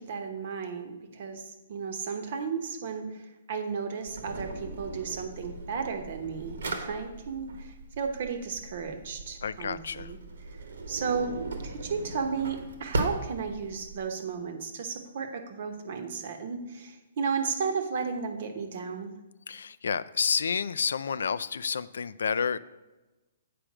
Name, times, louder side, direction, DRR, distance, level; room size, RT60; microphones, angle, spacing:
voice 1, 0.0-10.2 10.4-10.6 10.9-11.4 11.6-19.1, right 5 dB, 40° right, 7 dB, 0.9 m, -34 dB
Drawer open or close, 4.1-14.0, right 2 dB, 70° right, 1.2 m, -38 dB
voice 2, 9.4-10.1 19.5-22.6, left 6 dB, 85° left, 15 dB, 0.4 m, -30 dB
8.7 x 5.0 x 6.0 m, 1.1 s
hypercardioid pair, 175°, 0 cm